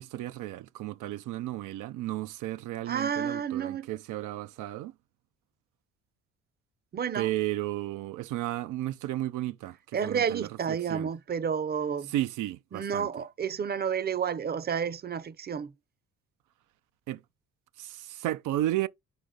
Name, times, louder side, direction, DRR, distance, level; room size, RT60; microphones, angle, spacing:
voice 1, 0.0-4.9 7.1-11.1 12.1-13.1 17.1-17.2 17.8-18.9, right 15 dB, 90° right, 0.5 m, -33 dB
voice 2, 2.9-3.9 6.9-7.3 9.9-12.1 12.7-15.7, right 7 dB, 35° right, 0.6 m, -30 dB
6.7 x 4.6 x 3.7 m
cardioid pair, 90°, 30 cm